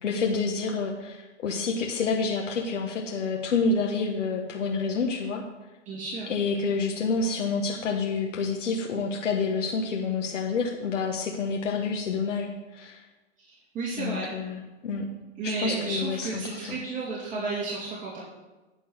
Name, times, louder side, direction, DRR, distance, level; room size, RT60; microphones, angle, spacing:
voice 1, 0.0-5.4 6.3-13.0 14.0-15.1 15.4-16.8, left 4 dB, 80° left, 0 dB, 1.5 m, -28 dB
voice 2, 5.9-6.3 13.7-14.3 15.4-18.2, right 3 dB, 20° right, -6 dB, 2.8 m, -32 dB
9.4 x 5.5 x 8.2 m, 1.1 s
hypercardioid pair, 140°, 36 cm